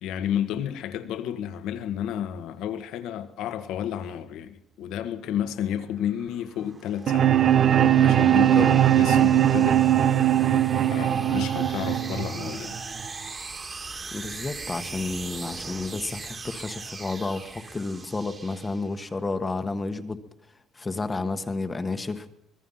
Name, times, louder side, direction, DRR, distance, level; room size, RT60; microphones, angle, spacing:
voice 1, 0.0-7.4 8.0-9.9 10.9-12.8, left 9 dB, 80° left, 1.7 m, -31 dB
sound 1, 5.7-19.2, right 4 dB, 30° right, 2.9 m, -41 dB
sound 2, 7.1-13.1, right 11 dB, 50° right, 0.9 m, -20 dB
voice 2, 14.1-20.2 20.7-22.3, left 3 dB, 20° left, 1.4 m, -31 dB
24.5 x 21.0 x 5.7 m
cardioid pair, 115°, 0 cm